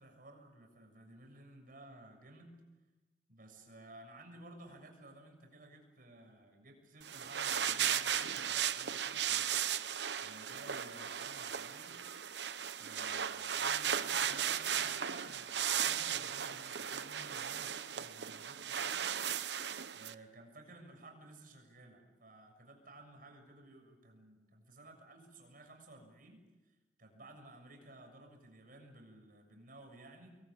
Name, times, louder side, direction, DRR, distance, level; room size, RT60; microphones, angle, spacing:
voice 1, 0.0-2.6 3.3-11.9 12.8-19.1 19.9-30.4, right 2 dB, 55° right, 4 dB, 7.0 m, -56 dB
sound 1, 7.0-20.1, right 9 dB, 75° right, 1.0 m, -36 dB
26.5 x 22.0 x 8.7 m, 1.1 s
head